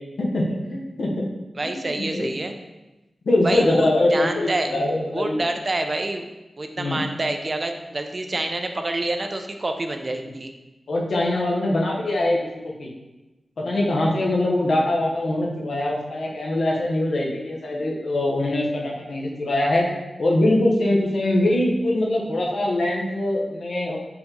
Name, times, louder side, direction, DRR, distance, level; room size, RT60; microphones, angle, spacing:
voice 1, 0.2-1.2 1.6-2.3 3.2-5.4 6.8-7.0 10.2-10.3 10.9-12.9 13.6-19.9 20.2-24.0, left 1 dB, 75° left, -1 dB, 0.8 m, -23 dB
voice 2, 1.5-2.5 3.4-4.7 5.1-6.3 6.6-10.5, right 2 dB, 40° right, 6 dB, 0.4 m, -27 dB
4.3 x 2.8 x 3.9 m, 1.1 s
wide cardioid pair, 70°, 0 cm